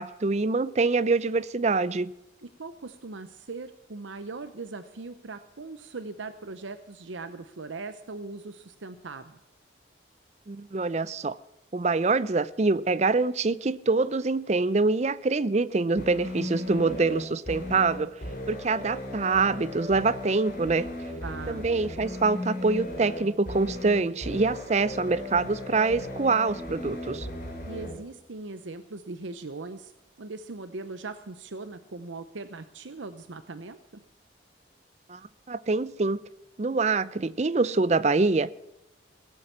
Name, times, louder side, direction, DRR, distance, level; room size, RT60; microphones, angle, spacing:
voice 1, 0.0-2.1 10.5-11.4 11.7-18.1 18.5-20.9 21.5-27.3 35.1-35.2 35.5-36.2 36.6-38.5, right 3 dB, 35° right, 0.5 m, -25 dB
voice 2, 2.4-9.4 21.2-21.7 27.7-29.9 30.2-33.8, right 3 dB, 80° right, 0.8 m, -40 dB
sound 1, 16.0-28.0, left 1 dB, 45° left, 4.8 m, -36 dB
17.0 x 8.6 x 7.2 m
head